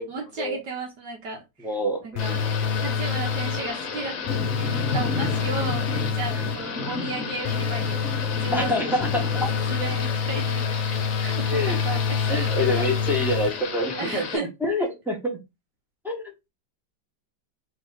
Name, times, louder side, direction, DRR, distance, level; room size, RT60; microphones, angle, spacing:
voice 1, 0.0-1.7 2.0-2.4 2.8-4.2 4.6-8.9 9.7-12.5 12.8-12.9 14.0-14.5 14.8-14.9, right 3 dB, 65° right, 1.4 m, -34 dB
voice 2, 1.6-2.5 6.3-6.5 8.5-9.2 11.5-11.8 12.3-15.4 16.0-16.2, left 1 dB, 5° right, 0.3 m, -27 dB
sound 1, 2.2-3.8 4.3-6.8 7.4-13.8, left 6 dB, 85° left, 1.3 m, -27 dB
Thunder / Rain, 2.2-14.4, left 5 dB, 55° left, 1.0 m, -32 dB
3.1 x 3.1 x 3.9 m
omnidirectional pair, 2.1 m